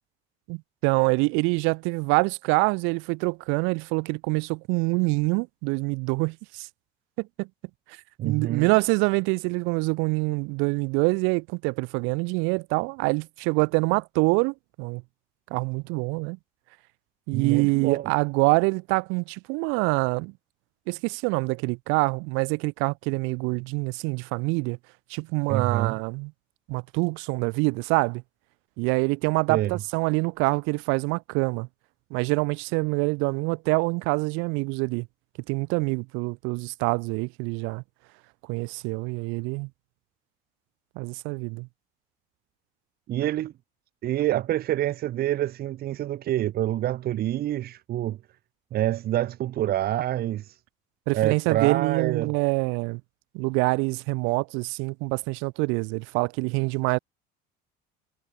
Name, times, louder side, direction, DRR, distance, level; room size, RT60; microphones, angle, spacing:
voice 1, 0.5-6.7 7.2-7.5 8.2-15.0 15.5-16.4 17.3-20.3 20.9-24.8 25.1-26.3 26.7-28.2 28.8-31.7 32.1-35.1 35.5-37.8 38.5-39.7 40.9-41.7 51.1-53.0 53.3-57.0, right 30 dB, 85° right, 1.5 m, -25 dB
voice 2, 8.2-8.7 17.3-18.1 25.5-25.9 29.5-29.8 43.1-43.5 44.0-48.2 48.7-50.6 51.1-52.3, right 13 dB, 50° right, 2.0 m, -27 dB
cardioid pair, 135°, 20 cm